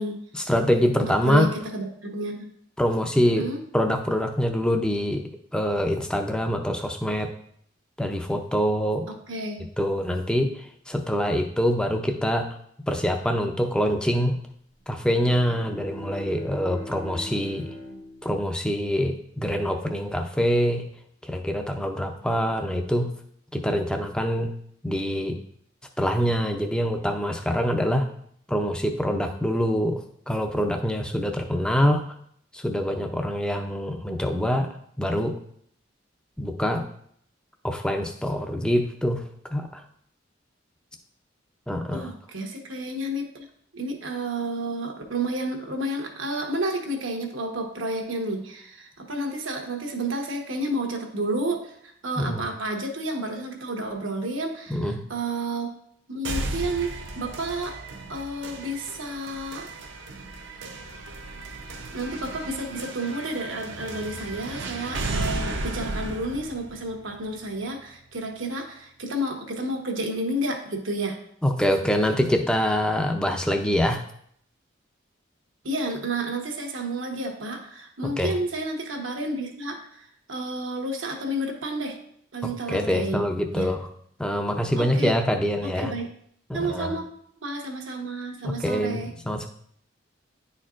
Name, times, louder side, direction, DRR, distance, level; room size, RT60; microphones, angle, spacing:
voice 1, 0.3-1.5 2.8-3.5 3.7-5.2 5.5-7.3 8.0-9.1 9.8-12.5 12.9-14.4 14.9-17.7 18.2-20.9 21.2-23.1 23.5-24.5 24.8-25.4 26.0-28.1 28.5-32.1 32.5-34.7 35.0-35.3 36.4-36.9 37.6-39.2 39.5-39.8 41.7-42.1 52.2-52.4 54.7-55.0 71.4-74.0 78.2-78.3 82.4-83.9 84.2-85.9 86.5-87.0 88.4-89.5, equal, 5° left, 4 dB, 0.4 m, -25 dB
voice 2, 1.2-2.5 3.2-3.6 9.3-9.7 41.9-43.4 43.7-55.7 56.1-57.7 58.1-59.7 61.9-71.2 75.6-82.0 82.3-83.2 83.5-83.7 84.8-85.1 85.6-86.1 86.5-87.1 87.4-89.1, right 1 dB, 85° right, 2 dB, 1.1 m, -31 dB
Bowed string instrument, 15.0-19.6, left 1 dB, 55° left, 1.4 m, -42 dB
sound 1, 56.2-68.2, right 2 dB, 70° right, 0.7 m, -35 dB
10.0 x 4.4 x 2.5 m, 0.65 s
head